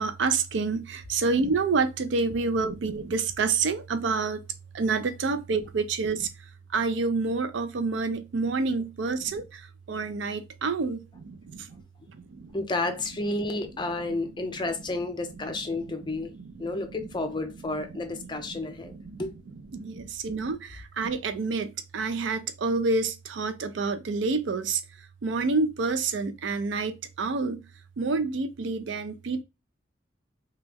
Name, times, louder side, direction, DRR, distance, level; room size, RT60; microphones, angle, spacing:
voice 1, 0.0-4.4 4.7-6.3 6.7-11.8 12.1-12.6 14.1-14.2 15.5-16.8 17.8-17.9 18.2-19.2 19.7-24.8 25.2-27.7 28.0-29.4, right 4 dB, 80° right, 0.4 m, -28 dB
voice 2, 12.5-16.3 16.6-19.3, left 2 dB, 25° left, 0.5 m, -31 dB
3.0 x 2.3 x 3.4 m
head